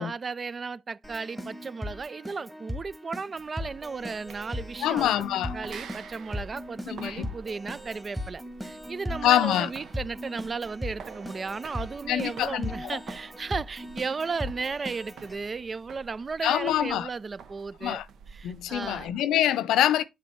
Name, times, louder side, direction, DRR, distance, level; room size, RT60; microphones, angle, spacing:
voice 1, 0.0-5.3 5.5-18.0 18.3-19.1, right 4 dB, 35° right, 0.3 m, -35 dB
Keyboard (musical), 1.0-15.4, left 1 dB, 5° right, 1.6 m, -38 dB
sound 1, 3.3-19.2, right 6 dB, 70° right, 0.8 m, -49 dB
voice 2, 4.8-5.6 6.9-7.3 9.2-9.7 12.1-13.0 16.4-17.1 17.8-18.1 18.4-20.0, left 12 dB, 85° left, 0.5 m, -25 dB
7.4 x 3.5 x 4.4 m
cardioid pair, 90°, 0 cm